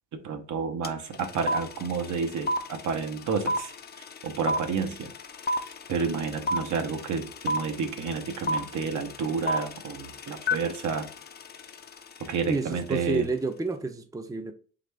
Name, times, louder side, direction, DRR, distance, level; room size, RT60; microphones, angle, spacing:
voice 1, 0.2-3.7 4.2-5.1 5.9-11.1 12.2-13.3, right 5 dB, 75° right, 1.0 m, -30 dB
sound 1, 0.8-0.9 1.1-12.3, left 1 dB, 35° left, 0.6 m, -30 dB
voice 2, 12.4-14.5, right 3 dB, 10° right, 0.5 m, -30 dB
3.9 x 3.2 x 3.4 m
cardioid pair, 90°, 30 cm